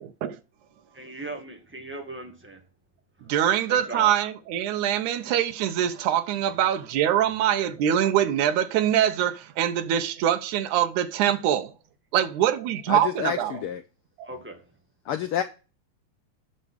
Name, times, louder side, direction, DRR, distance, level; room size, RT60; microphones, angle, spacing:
voice 1, 0.9-2.6 3.7-4.1 14.2-14.6, right 2 dB, 5° right, 1.3 m, -37 dB
voice 2, 3.3-11.7 12.1-13.6 14.2-14.3, right 10 dB, 90° right, 2.4 m, -24 dB
voice 3, 12.9-13.8 15.1-15.4, left 10 dB, 90° left, 1.2 m, -28 dB
8.9 x 6.6 x 6.2 m
omnidirectional pair, 3.3 m